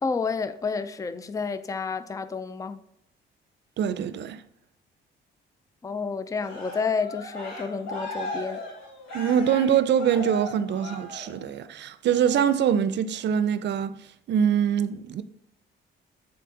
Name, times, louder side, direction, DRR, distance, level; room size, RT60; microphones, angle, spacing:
voice 1, 0.0-2.8 5.8-8.6, left 5 dB, 15° left, 0.4 m, -30 dB
voice 2, 3.8-4.4 9.1-14.0 14.3-15.2, right 8 dB, 60° right, 0.5 m, -24 dB
Cheering, 6.4-11.6 12.1-12.5, equal, 85° left, 2.4 m, -37 dB
6.8 x 3.8 x 3.7 m
cardioid pair, 90°, 20 cm